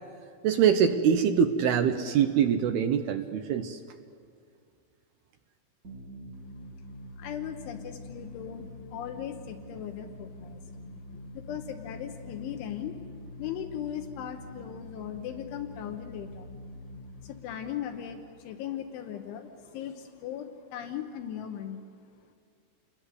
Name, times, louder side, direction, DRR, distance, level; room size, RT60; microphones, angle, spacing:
voice 1, 0.4-3.8, right 8 dB, 80° right, 7 dB, 2.3 m, -24 dB
sound 1, 5.8-19.1, left 1 dB, 45° right, 1.1 m, -45 dB
voice 2, 7.2-16.5 17.2-21.9, left 10 dB, 80° left, 6 dB, 3.5 m, -38 dB
29.0 x 22.0 x 8.1 m, 2.2 s
omnidirectional pair, 5.7 m